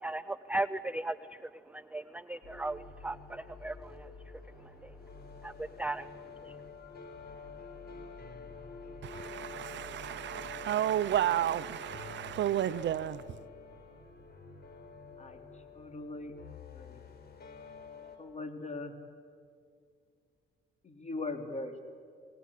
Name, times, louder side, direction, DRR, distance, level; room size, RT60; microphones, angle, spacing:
voice 1, 0.0-4.1 4.8-4.9 5.4-6.1 6.4-6.5, right 2 dB, 5° right, 0.5 m, -37 dB
sound 1, 2.4-18.2, left 4 dB, 55° left, 4.2 m, -48 dB
voice 2, 9.0-13.2, right 11 dB, 65° right, 0.8 m, -32 dB
voice 3, 15.7-16.3 16.7-17.0 18.2-18.9 20.8-21.7, left 3 dB, 35° left, 3.3 m, -40 dB
28.0 x 19.5 x 8.5 m
cardioid pair, 90°, 20 cm